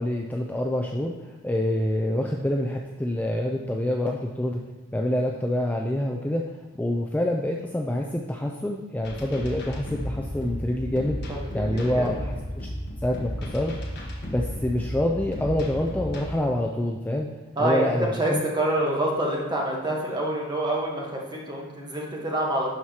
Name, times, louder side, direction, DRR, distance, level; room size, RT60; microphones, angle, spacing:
voice 1, 0.0-4.6 4.9-11.2 11.5-12.7 13.0-13.8 14.3-17.3 17.6-18.4, left 1 dB, 10° left, 0 dB, 0.3 m, -26 dB
sound 1, 9.0-16.2, equal, 55° left, 1.2 m, -34 dB
voice 2, 11.3-12.0 17.6-22.7, right 1 dB, 20° right, -2 dB, 1.1 m, -27 dB
11.5 x 4.7 x 2.8 m, 1.2 s
head